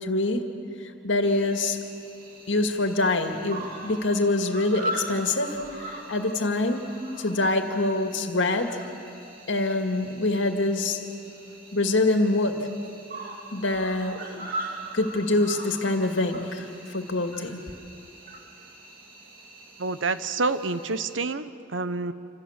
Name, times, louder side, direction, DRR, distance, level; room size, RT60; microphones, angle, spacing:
voice 1, 0.0-0.5 1.0-1.8 2.5-6.9 7.2-8.8 9.5-11.0 11.7-12.7 13.5-14.5 14.9-17.6, left 2 dB, 75° left, 5 dB, 2.2 m, -25 dB
Cricket, 1.2-21.1, right 1 dB, 50° right, 3.2 m, -41 dB
voice 2, 19.8-22.1, right 3 dB, 85° right, 12 dB, 1.0 m, -28 dB
27.5 x 27.0 x 7.5 m, 2.7 s
head